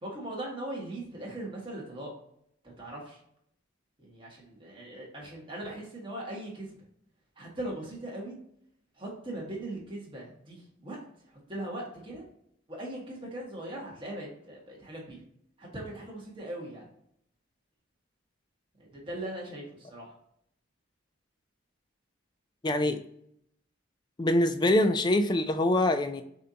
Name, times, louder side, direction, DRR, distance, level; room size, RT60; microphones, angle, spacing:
voice 1, 0.0-2.1 2.6-3.2 4.0-6.8 7.4-8.3 9.0-11.0 11.5-12.3 12.7-15.2 15.6-16.9 18.8-20.1, right 1 dB, 25° right, -3 dB, 1.5 m, -39 dB
voice 2, 22.6-23.0 24.2-26.2, left 1 dB, 20° left, 8 dB, 0.4 m, -24 dB
6.7 x 2.7 x 2.8 m, 0.70 s
head